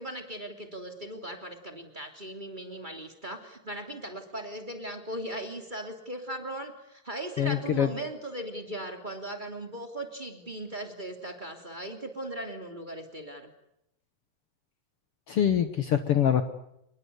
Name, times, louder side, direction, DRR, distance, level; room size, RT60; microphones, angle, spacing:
voice 1, 0.0-13.5, right 1 dB, 15° right, 5 dB, 2.9 m, -38 dB
voice 2, 7.4-7.9 15.3-16.4, left 9 dB, 55° left, 9 dB, 1.9 m, -24 dB
28.5 x 21.5 x 8.2 m, 0.79 s
omnidirectional pair, 3.4 m